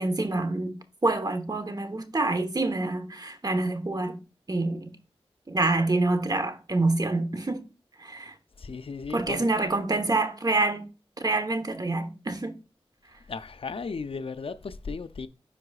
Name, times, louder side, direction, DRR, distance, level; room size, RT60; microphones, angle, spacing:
voice 1, 0.0-4.2 4.5-4.9 5.5-7.6 8.0-8.3 9.1-10.9 11.2-12.6, right 2 dB, 40° right, 1.0 m, -27 dB
voice 2, 8.6-9.5 13.3-15.3, left 4 dB, 65° left, 0.5 m, -35 dB
9.9 x 4.7 x 2.4 m
wide cardioid pair, 55°, 10 cm